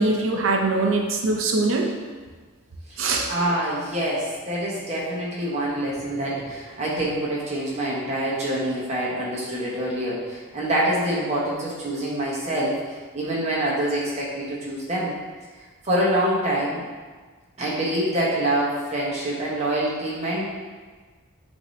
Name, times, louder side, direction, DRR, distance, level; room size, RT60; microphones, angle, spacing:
voice 1, 0.0-1.9 3.0-3.3, right 3 dB, 65° right, 1 dB, 0.5 m, -22 dB
voice 2, 3.3-12.8 13.1-15.1 15.8-16.8 17.6-20.5, right 1 dB, 30° right, -5 dB, 1.0 m, -25 dB
6.0 x 2.7 x 3.2 m, 1.4 s
head